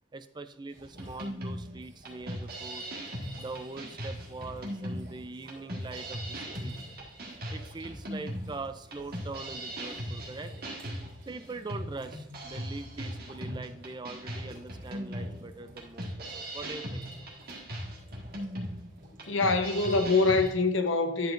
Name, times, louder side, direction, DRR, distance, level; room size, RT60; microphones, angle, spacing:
voice 1, 0.1-2.9 3.4-6.8 7.5-10.5 11.2-16.1 16.3-17.0, right 3 dB, 25° right, 0.4 m, -42 dB
sound 1, 0.7-20.5, right 1 dB, 85° right, 2.5 m, -55 dB
sound 2, 1.0-20.5, equal, 55° right, 1.7 m, -39 dB
voice 2, 19.3-21.3, left 3 dB, 90° left, 0.9 m, -25 dB
10.5 x 7.2 x 2.6 m
head